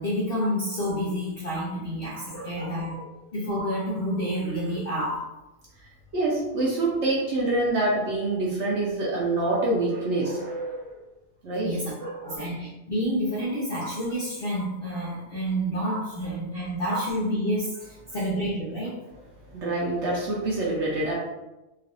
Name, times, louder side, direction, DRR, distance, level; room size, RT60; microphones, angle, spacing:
voice 1, 0.0-3.0 3.3-5.2 11.6-11.9 12.2-19.0, equal, 60° left, -6 dB, 0.6 m, -29 dB
voice 2, 2.3-3.0 6.1-10.9 11.4-12.4 19.5-21.1, right 2 dB, 60° right, -5 dB, 0.8 m, -26 dB
3.0 x 2.5 x 2.5 m, 0.99 s
omnidirectional pair, 1.7 m